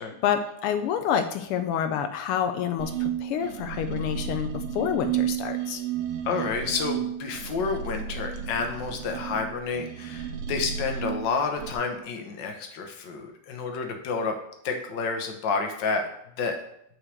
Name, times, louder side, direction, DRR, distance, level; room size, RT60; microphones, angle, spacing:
voice 1, 0.2-5.8, left 8 dB, 85° left, 8 dB, 1.5 m, -28 dB
sound 1, 2.8-11.7, right 9 dB, 90° right, 1.8 m, -32 dB
voice 2, 6.2-14.3 14.6-16.0 16.4-16.6, left 4 dB, 60° left, 4 dB, 1.7 m, -29 dB
6.3 x 4.8 x 6.3 m, 0.74 s
omnidirectional pair, 2.4 m